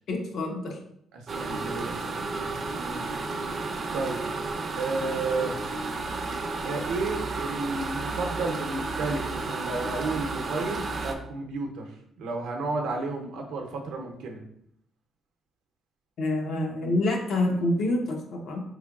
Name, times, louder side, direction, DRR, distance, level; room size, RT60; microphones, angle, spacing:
voice 1, 0.1-0.8 16.2-18.6, left 2 dB, 65° left, 1 dB, 0.7 m, -27 dB
voice 2, 1.1-3.0 3.9-4.2 4.7-5.7 6.6-11.8 12.2-14.4, right 3 dB, 85° right, 1 dB, 0.6 m, -32 dB
sound 1, 1.3-11.1, right 3 dB, 45° right, 0.4 m, -32 dB
3.7 x 3.3 x 2.3 m, 0.72 s
cardioid pair, 90°, 0 cm